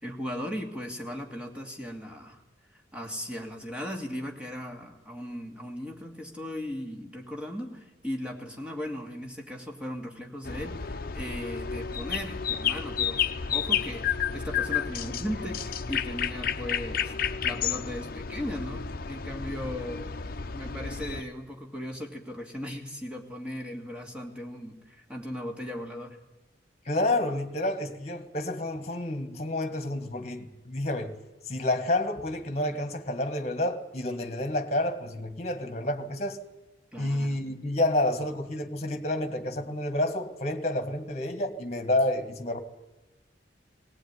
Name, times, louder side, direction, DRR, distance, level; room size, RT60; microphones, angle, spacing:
voice 1, 0.0-2.4 2.7-13.2 13.5-20.1 20.5-26.2 36.9-37.3, equal, 5° right, 2 dB, 2.5 m, -37 dB
sound 1, 10.4-21.2, left 8 dB, 55° left, 0.8 m, -31 dB
voice 2, 26.9-31.2 31.4-36.4 37.0-42.6, left 1 dB, 35° left, 9 dB, 1.9 m, -29 dB
19.0 x 18.5 x 9.7 m, 1.0 s
head